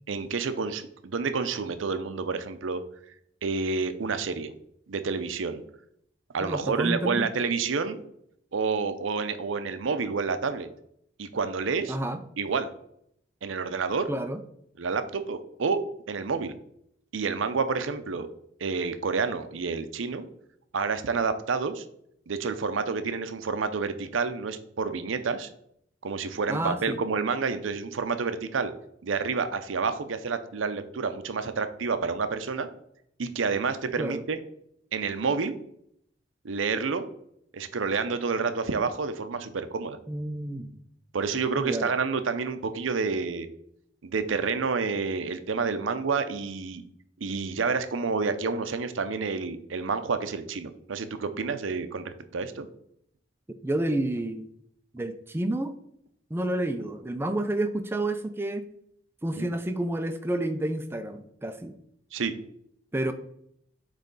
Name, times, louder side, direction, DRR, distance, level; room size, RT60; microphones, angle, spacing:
voice 1, 0.1-2.8 3.4-4.5 4.9-5.6 6.3-8.0 8.5-10.7 11.2-12.0 12.4-12.7 13.4-14.1 14.8-15.8 16.1-16.5 17.1-18.3 18.6-20.3 20.7-21.8 22.3-25.5 26.0-28.7 29.0-32.7 33.2-34.4 34.9-35.5 36.4-37.0 37.5-40.0 41.1-43.5 44.0-46.8 47.2-52.7 59.4-59.5 62.1-62.3, right 4 dB, 85° right, 10 dB, 0.6 m, -29 dB
voice 2, 6.4-7.3 11.9-12.2 14.1-14.4 26.5-27.0 34.0-34.2 40.1-40.8 41.6-41.9 53.6-54.5 54.9-55.8 56.3-58.6 59.2-61.8 62.9-63.1, right 1 dB, 10° right, 9 dB, 0.4 m, -29 dB
8.2 x 3.2 x 4.0 m, 0.71 s
head